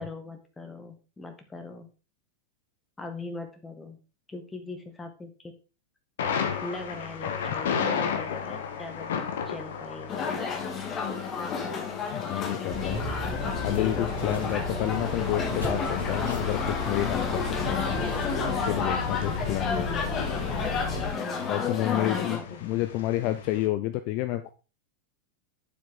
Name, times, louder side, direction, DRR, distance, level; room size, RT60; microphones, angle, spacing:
voice 1, 0.0-1.9 3.0-4.0 4.3-5.5 6.6-10.4 19.0-20.0 21.1-22.6, left 2 dB, 10° left, 5 dB, 2.0 m, -40 dB
Thunder, 6.2-23.7, left 7 dB, 60° left, 1.6 m, -36 dB
sound 1, 10.1-22.4, left 5 dB, 25° left, 2.1 m, -31 dB
voice 2, 12.1-13.0 13.6-17.8 18.7-19.7 21.5-24.5, left 15 dB, 45° left, 11 dB, 0.6 m, -30 dB
sound 2, 12.7-21.1, left 2 dB, 80° left, 3.7 m, -33 dB
9.5 x 7.4 x 3.8 m, 0.33 s
figure-of-eight pair, 90°, 0 cm